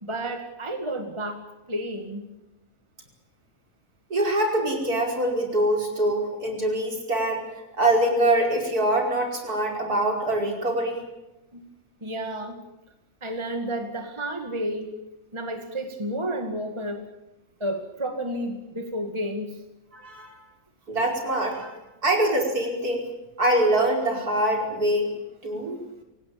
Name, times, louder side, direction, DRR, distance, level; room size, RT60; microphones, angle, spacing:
voice 1, 0.0-2.2 11.5-11.7 12.0-12.6 13.2-14.9 15.3-17.1 17.6-19.6, right 1 dB, 20° right, 5 dB, 2.3 m, -31 dB
voice 2, 4.1-7.4 7.8-11.0 19.9-20.3 20.9-21.8 22.0-23.1 23.4-25.1 25.4-25.8, right 1 dB, 90° right, 2 dB, 5.7 m, -24 dB
27.5 x 18.5 x 8.8 m, 0.97 s
omnidirectional pair, 1.6 m